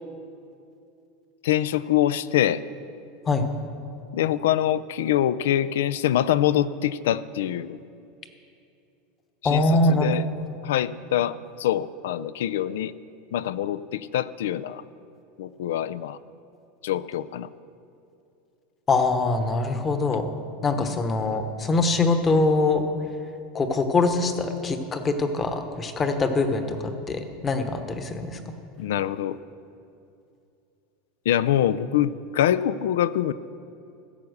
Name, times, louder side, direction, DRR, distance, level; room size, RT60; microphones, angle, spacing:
voice 1, 1.4-2.6 4.1-7.8 9.4-10.3 10.6-12.9 13.3-14.8 15.4-16.2 16.8-17.5 20.8-21.0 28.8-29.4 31.3-33.3, left 11 dB, 90° left, 16 dB, 0.4 m, -24 dB
voice 2, 9.4-10.1 18.9-20.2 20.6-22.8 23.5-28.4, left 3 dB, 20° left, 7 dB, 1.0 m, -23 dB
15.5 x 7.1 x 6.6 m, 2.6 s
supercardioid pair, 145°, 0 cm